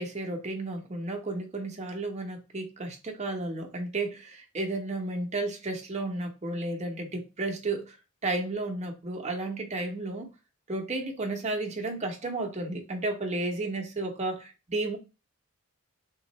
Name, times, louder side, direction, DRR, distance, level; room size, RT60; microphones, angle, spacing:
voice 1, 0.0-7.9 8.2-10.3 10.7-15.0, right 2 dB, 30° right, 0.9 m, -33 dB
3.7 x 2.5 x 4.1 m
head